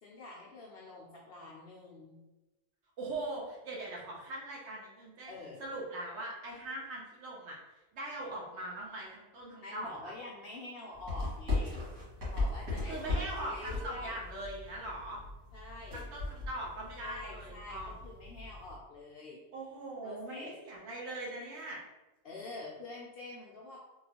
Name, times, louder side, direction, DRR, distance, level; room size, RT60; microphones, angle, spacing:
voice 1, 0.0-2.2 5.3-5.6 9.6-11.9 12.2-14.2 15.5-16.1 17.0-19.4 20.0-20.5 22.2-23.8, left 2 dB, 60° left, -3 dB, 0.6 m, -46 dB
voice 2, 3.0-5.3 5.6-7.6 7.9-10.1 12.9-15.2 15.9-17.9 19.5-21.8, right 1 dB, 60° right, -3 dB, 1.0 m, -41 dB
sound 1, 10.9-18.8, left 2 dB, 80° right, 2.1 m, -38 dB
3.6 x 2.4 x 2.8 m, 1.1 s
omnidirectional pair, 1.4 m